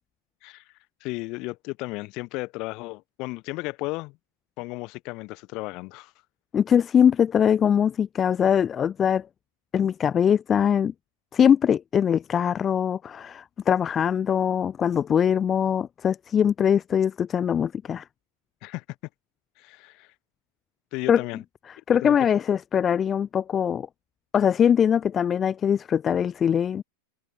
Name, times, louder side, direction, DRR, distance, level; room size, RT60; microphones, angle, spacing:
voice 1, 1.0-4.2 4.6-6.1 18.6-18.8 19.6-20.1 20.9-21.4 22.0-22.2, left 24 dB, 40° left, 1.2 m, -34 dB
voice 2, 6.5-9.3 9.7-10.9 11.3-18.0 21.1-21.2 21.9-23.9 24.3-26.8, left 8 dB, 25° left, 0.4 m, -22 dB
figure-of-eight pair, 90°, 0 cm